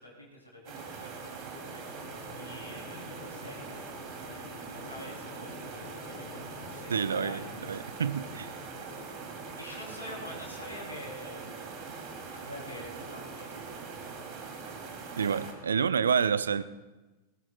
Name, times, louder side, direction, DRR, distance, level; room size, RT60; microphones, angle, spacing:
voice 1, 0.0-1.9 2.3-3.8 4.3-7.9 9.6-11.6 12.2-13.8, left 1 dB, 85° left, -2 dB, 3.6 m, -46 dB
sound 1, 0.6-15.5, right 4 dB, 40° right, 3.0 m, -42 dB
sound 2, 1.9-9.1, left 7 dB, 60° left, 1.1 m, -50 dB
voice 2, 6.9-8.5 15.2-16.6, right 6 dB, 70° right, 15 dB, 0.5 m, -28 dB
22.0 x 19.5 x 2.4 m, 1.1 s
figure-of-eight pair, 90°, 0 cm